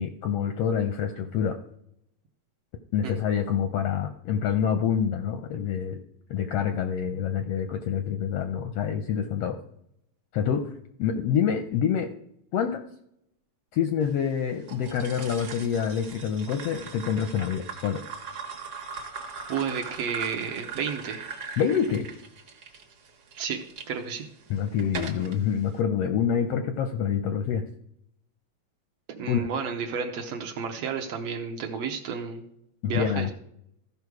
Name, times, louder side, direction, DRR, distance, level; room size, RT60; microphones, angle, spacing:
voice 1, 0.0-1.6 2.9-6.0 6.3-9.6 10.3-10.7 11.0-12.1 12.5-12.8 13.7-18.0 21.6-22.1 24.5-27.6 29.3-29.5 32.8-33.3, left 8 dB, 75° left, 7 dB, 1.4 m, -26 dB
sound 1, 14.7-23.9 24.4-25.4, right 5 dB, 55° right, 2.0 m, -40 dB
voice 2, 19.5-21.3 23.4-23.6 23.9-24.2 29.1-32.4 32.8-33.3, right 6 dB, 70° right, 4 dB, 1.8 m, -31 dB
14.5 x 5.4 x 4.7 m, 0.76 s
omnidirectional pair, 3.3 m